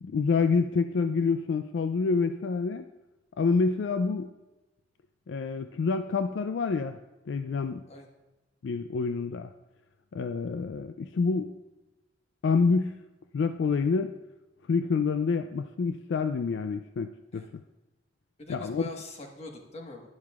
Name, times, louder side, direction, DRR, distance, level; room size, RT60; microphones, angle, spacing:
voice 1, 0.0-2.9 3.4-4.3 5.3-7.0 7.3-7.8 8.6-9.5 10.1-11.5 12.4-13.0 13.3-14.1 14.7-17.4 18.5-18.8, left 4 dB, 65° left, 9 dB, 0.4 m, -27 dB
voice 2, 18.4-20.1, left 2 dB, 35° left, 1 dB, 1.3 m, -42 dB
12.0 x 10.5 x 2.4 m, 1.1 s
head